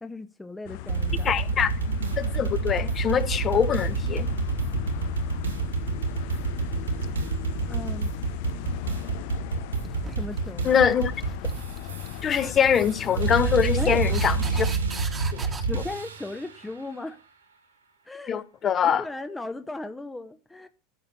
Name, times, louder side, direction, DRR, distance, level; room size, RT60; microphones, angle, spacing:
voice 1, 0.0-1.3 7.7-8.1 10.1-10.8 13.8-14.0 15.7-17.2 18.0-18.4 18.8-20.7, left 2 dB, 10° left, 0.8 m, -36 dB
sound 1, 0.7-14.8, left 15 dB, 60° left, 0.6 m, -37 dB
sound 2, 0.9-16.5, right 4 dB, 85° right, 2.2 m, -28 dB
voice 2, 1.2-1.7 2.2-4.3 10.6-11.1 12.2-14.7 15.3-15.4 18.3-19.1, left 8 dB, 35° left, 1.0 m, -23 dB
sound 3, 9.8-15.6, right 4 dB, 20° right, 1.2 m, -41 dB
14.0 x 6.5 x 4.4 m
figure-of-eight pair, 80°, 0 cm